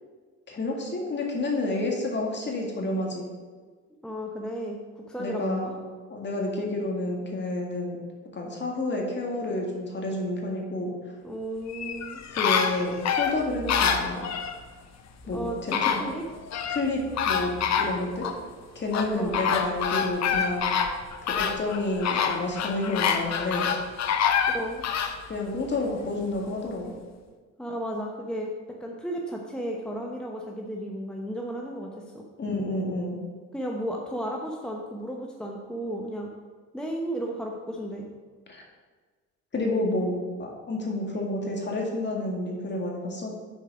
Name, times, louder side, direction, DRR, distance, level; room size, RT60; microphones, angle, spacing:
voice 1, 0.5-3.3 5.2-5.8 6.1-8.0 8.3-10.9 12.3-14.3 15.3-16.0 16.7-17.5 17.8-18.3 18.8-20.7 21.3-23.7 25.3-26.9 32.4-33.2 38.5-38.6 39.5-40.1 40.4-43.3, left 2 dB, 35° left, -1 dB, 2.0 m, -29 dB
voice 2, 4.0-5.7 11.2-12.2 15.3-16.2 19.1-19.5 24.5-24.8 27.6-28.5 28.8-31.9 32.1-32.2 33.5-36.3 36.7-38.1, equal, 5° left, -1 dB, 0.8 m, -34 dB
sound 1, 11.7-14.6 15.3-15.4 15.7-16.8 17.2-18.4 18.9-25.2 25.7-25.8, left 7 dB, 60° left, 0.8 m, -26 dB
sound 2, 13.1-14.5 15.0-22.0, right 3 dB, 60° right, 2.1 m, -46 dB
6.7 x 4.7 x 6.0 m, 1.5 s
cardioid pair, 90°, 30 cm